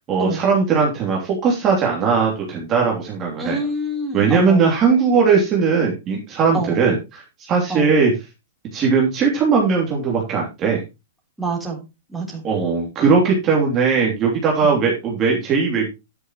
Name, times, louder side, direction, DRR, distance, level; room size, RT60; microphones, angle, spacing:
voice 1, 0.1-3.6 4.1-8.1 8.7-10.8 12.4-15.9, right 5 dB, 20° right, -1 dB, 2.9 m, -19 dB
voice 2, 3.4-4.7 6.5-6.8 7.7-7.9 11.4-11.8 12.1-12.4 14.6-14.8, right 2 dB, 5° right, -2 dB, 3.7 m, -26 dB
10.5 x 9.9 x 3.1 m, 0.25 s
hypercardioid pair, 165°, 0 cm